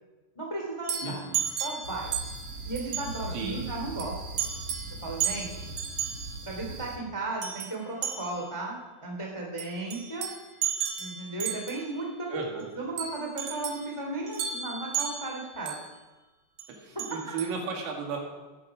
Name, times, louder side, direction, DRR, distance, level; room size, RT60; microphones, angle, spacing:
voice 1, 0.3-1.2 1.6-2.1 2.6-4.4 5.0-5.8 6.4-10.3 11.0-12.4 12.7-15.7 16.9-17.0, right 2 dB, 15° left, -1 dB, 1.2 m, -35 dB
sound 1, 0.8-2.5 2.8-3.2 4.0-4.1 4.4-4.9 5.2-6.2 7.4-7.7 8.0-8.5 9.6-11.9 13.0-13.9 14.3-15.9 16.6-16.7 17.0-17.5, right 8 dB, 75° right, 1.8 m, -33 dB
voice 2, 1.0-1.5 3.3-3.7 12.3-12.7 16.7-18.2, right 5 dB, 90° right, 1 dB, 4.8 m, -35 dB
sound 2, 1.8-7.0, right 2 dB, 55° right, 1.7 m, -40 dB
18.0 x 12.0 x 4.9 m, 1.2 s
omnidirectional pair, 5.6 m